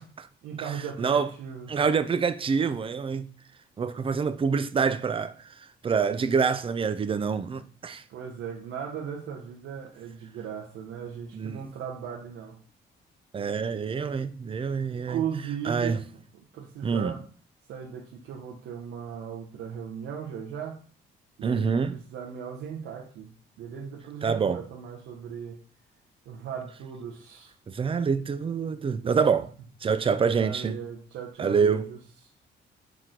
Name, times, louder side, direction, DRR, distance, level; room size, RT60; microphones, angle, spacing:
voice 1, 0.4-1.8 8.1-12.6 14.9-16.1 16.5-17.3 17.7-20.8 21.4-25.6 26.3-27.5 30.3-32.0, right 8 dB, 80° right, 0.7 m, -37 dB
voice 2, 1.7-3.3 3.8-5.5 5.8-8.0 11.3-11.6 13.3-15.2 15.7-16.0 16.8-17.1 21.4-22.0 24.2-24.6 27.7-29.5 29.8-30.8 31.4-31.9, right 5 dB, 25° right, 0.4 m, -26 dB
4.2 x 3.0 x 3.7 m
cardioid pair, 90°, 20 cm